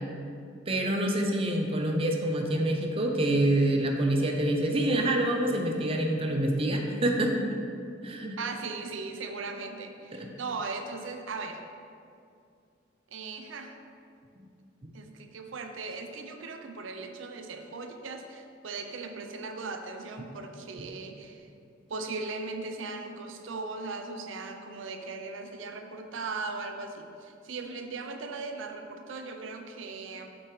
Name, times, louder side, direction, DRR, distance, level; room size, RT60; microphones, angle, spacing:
voice 1, 0.7-7.6 8.0-8.4 10.1-10.3, right 1 dB, 30° right, 2 dB, 0.6 m, -26 dB
voice 2, 8.4-11.6 13.1-13.8 14.9-21.5 21.9-30.3, right 3 dB, 90° right, 5 dB, 0.6 m, -38 dB
8.0 x 6.0 x 3.2 m, 2.4 s
head